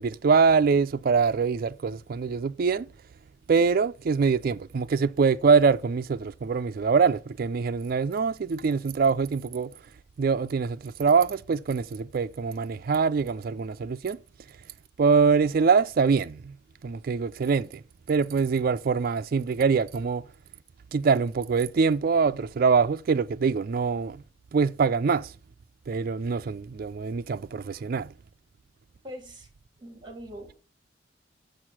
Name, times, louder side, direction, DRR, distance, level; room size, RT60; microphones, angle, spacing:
voice 1, 0.0-2.9 3.5-9.7 10.2-14.2 15.0-16.6 16.8-17.8 18.1-20.2 20.9-24.2 24.5-25.3 25.9-28.1, right 5 dB, 50° right, 0.4 m, -24 dB
voice 2, 29.0-29.5 29.8-30.5, equal, 25° right, 2.7 m, -42 dB
6.4 x 6.3 x 6.0 m
head